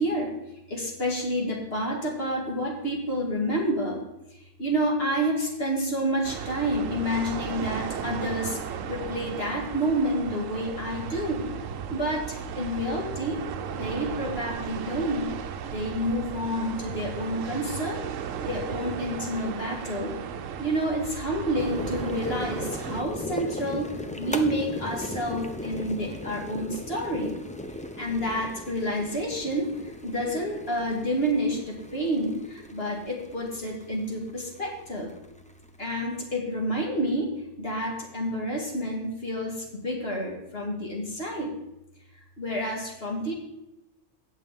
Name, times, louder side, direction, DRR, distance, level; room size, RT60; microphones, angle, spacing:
voice 1, 0.0-11.5 11.9-13.4 13.7-15.3 15.6-20.2 20.6-27.4 28.0-35.1 35.8-41.6 42.1-43.3, equal, 45° left, 0 dB, 2.1 m, -29 dB
sound 1, 6.2-23.0, right 7 dB, 70° right, 1.0 m, -35 dB
sound 2, 21.6-36.1, left 1 dB, 10° left, 0.3 m, -38 dB
17.0 x 6.5 x 3.6 m, 0.92 s
omnidirectional pair, 1.4 m